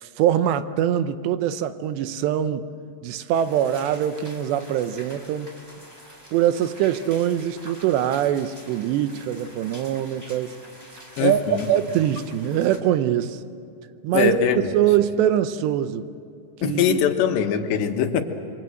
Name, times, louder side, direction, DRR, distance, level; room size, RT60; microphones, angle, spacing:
voice 1, 0.0-2.7 3.0-5.5 6.3-10.6 11.2-13.4 14.0-14.4 14.7-16.1 16.6-17.0, right 11 dB, 80° right, 11 dB, 2.9 m, -23 dB
sound 1, 3.3-12.8, equal, 10° right, 3.3 m, -46 dB
voice 2, 11.2-11.7 14.1-14.7 16.6-18.2, left 7 dB, 75° left, 5 dB, 3.4 m, -22 dB
27.5 x 24.0 x 7.8 m, 2.6 s
omnidirectional pair, 5.1 m